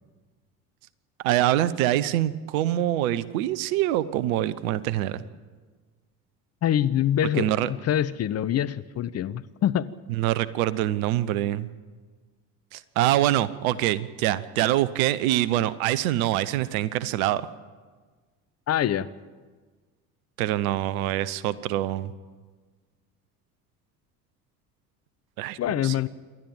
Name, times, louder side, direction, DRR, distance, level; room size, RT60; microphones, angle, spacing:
voice 1, 1.2-5.2 7.4-7.7 10.1-11.7 12.7-17.5 20.4-22.1 25.4-25.9, right 13 dB, 65° right, 18 dB, 1.1 m, -25 dB
voice 2, 6.6-9.9 18.7-19.1 25.6-26.1, left 11 dB, 35° left, 15 dB, 0.8 m, -25 dB
27.5 x 12.5 x 8.9 m, 1.4 s
figure-of-eight pair, 65°, 46 cm